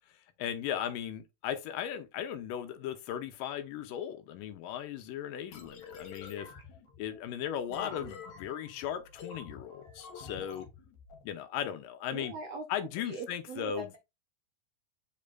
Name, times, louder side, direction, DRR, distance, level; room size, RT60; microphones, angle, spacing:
voice 1, 0.4-6.5 7.0-10.7 11.2-12.3 12.7-14.0, left 10 dB, 80° left, 2.3 m, -37 dB
sound 1, 5.5-11.2, left 5 dB, 60° left, 2.5 m, -48 dB
voice 2, 7.7-8.1 12.1-12.6 13.0-14.0, right 4 dB, 90° right, 1.4 m, -42 dB
7.5 x 5.3 x 2.5 m
omnidirectional pair, 4.2 m